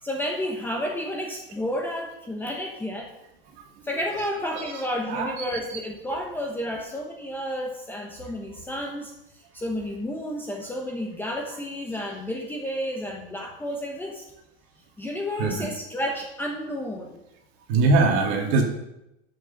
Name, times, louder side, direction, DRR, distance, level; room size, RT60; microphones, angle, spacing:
voice 1, 0.0-3.1 3.8-14.2 15.0-17.2, equal, 5° left, 1 dB, 0.9 m, -31 dB
voice 2, 5.1-5.4 5.7-5.8 15.0-15.1 15.4-15.7 17.7-18.6, right 3 dB, 45° right, 2 dB, 2.1 m, -22 dB
11.0 x 6.4 x 5.7 m, 0.89 s
supercardioid pair, 160°, 30 cm